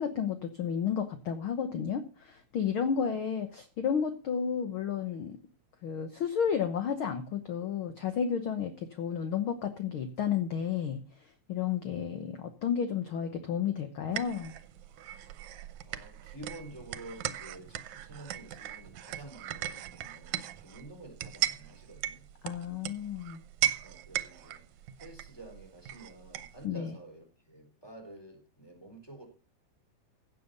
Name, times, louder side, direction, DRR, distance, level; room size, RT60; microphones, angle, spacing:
voice 1, 0.0-5.4 5.8-14.5 22.4-23.4 26.6-26.9, left 7 dB, 60° left, 9 dB, 1.5 m, -32 dB
voice 2, 2.9-3.2 15.5-22.2 23.8-24.6 25.0-29.3, right 1 dB, 5° left, 4 dB, 3.9 m, -50 dB
sound 1, 14.1-26.7, right 12 dB, 80° right, 2.2 m, -38 dB
16.0 x 7.7 x 5.4 m, 0.34 s
omnidirectional pair, 3.4 m